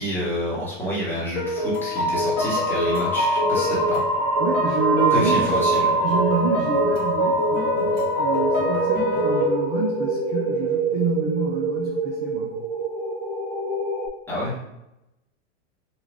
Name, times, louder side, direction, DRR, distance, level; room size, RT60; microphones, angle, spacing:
voice 1, 0.0-4.0 5.1-6.0 14.3-14.7, equal, 5° left, -7 dB, 1.2 m, -28 dB
sound 1, 1.4-9.4, left 2 dB, 30° left, 0.9 m, -25 dB
sound 2, 2.4-14.1, right 3 dB, 55° right, 1.2 m, -25 dB
voice 2, 4.4-5.6 5.9-12.6, right 5 dB, 30° right, -1 dB, 0.4 m, -28 dB
3.8 x 2.3 x 3.3 m, 0.89 s
hypercardioid pair, 135°, 35 cm